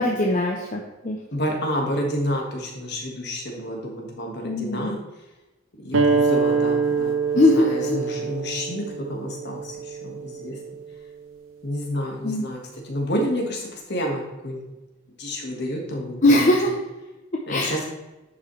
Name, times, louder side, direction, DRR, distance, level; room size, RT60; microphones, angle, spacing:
voice 1, 0.0-1.2 4.4-4.9 7.3-8.0 12.2-12.5 16.2-16.8 17.5-17.9, left 1 dB, 40° left, -1 dB, 0.7 m, -21 dB
voice 2, 1.3-5.0 5.8-10.6 11.6-14.6 15.2-16.5 17.5-17.8, equal, 55° left, 0 dB, 1.6 m, -29 dB
sound 1, 5.9-11.1, right 5 dB, 80° right, 0.7 m, -25 dB
10.5 x 5.3 x 3.2 m, 1.0 s
head